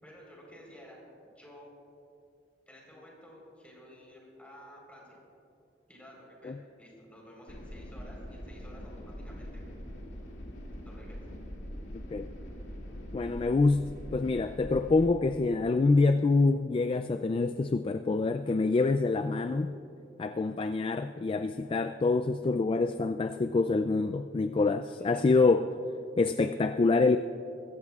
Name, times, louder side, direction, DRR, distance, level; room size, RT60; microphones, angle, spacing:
voice 1, 0.0-1.0 1.3-1.7 2.7-5.2 5.9-9.6 10.8-11.3 25.1-25.4, equal, 10° left, -3 dB, 4.0 m, -52 dB
sound 1, 7.5-15.1, equal, 85° left, 2.4 m, -43 dB
voice 2, 13.1-19.7 20.2-25.7 26.2-27.2, left 3 dB, 30° left, 9 dB, 0.3 m, -26 dB
22.0 x 15.5 x 2.4 m, 2.6 s
head